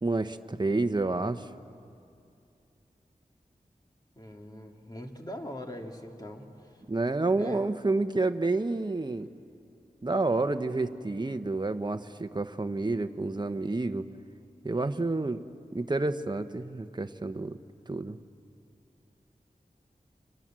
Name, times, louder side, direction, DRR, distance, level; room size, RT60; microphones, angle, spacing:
voice 1, 0.0-1.5 6.9-9.3 10.0-14.1 14.6-15.4 15.7-17.6 17.9-18.2, right 2 dB, 30° right, 8 dB, 1.0 m, -29 dB
voice 2, 4.2-6.5 7.4-7.6, left 1 dB, 25° left, 1 dB, 2.8 m, -41 dB
30.0 x 26.0 x 7.6 m, 2.5 s
wide cardioid pair, 80°, 15 cm